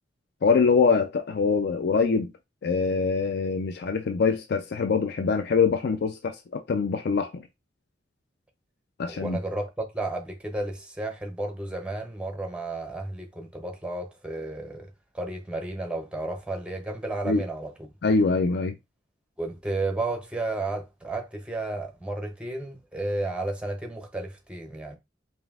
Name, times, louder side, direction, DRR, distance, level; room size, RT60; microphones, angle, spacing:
voice 1, 0.4-2.3 2.6-7.4 9.0-9.4 17.3-17.4 18.0-18.7, left 5 dB, 60° left, 0.4 m, -24 dB
voice 2, 9.1-17.9 19.4-25.0, right 2 dB, 5° right, 0.6 m, -32 dB
5.1 x 2.5 x 2.3 m
head